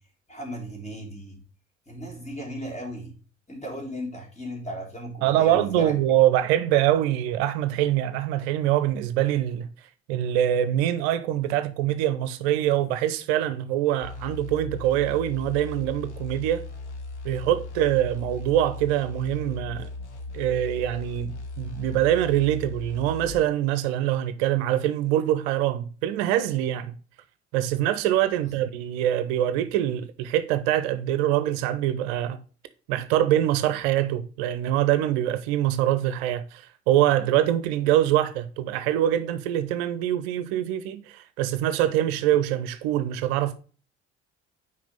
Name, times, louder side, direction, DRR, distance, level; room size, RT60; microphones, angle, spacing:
voice 1, 0.3-1.4 1.9-3.1 3.5-5.9 28.4-28.5, equal, 20° left, 3.4 m, -36 dB
voice 2, 5.2-9.7 10.1-16.7 17.2-19.9 20.3-27.0 27.5-32.4 32.9-43.6, right 12 dB, 65° right, 0.7 m, -24 dB
sound 1, 14.0-23.5, left 3 dB, 85° left, 1.1 m, -37 dB
5.9 x 4.8 x 5.3 m
figure-of-eight pair, 55°, 33 cm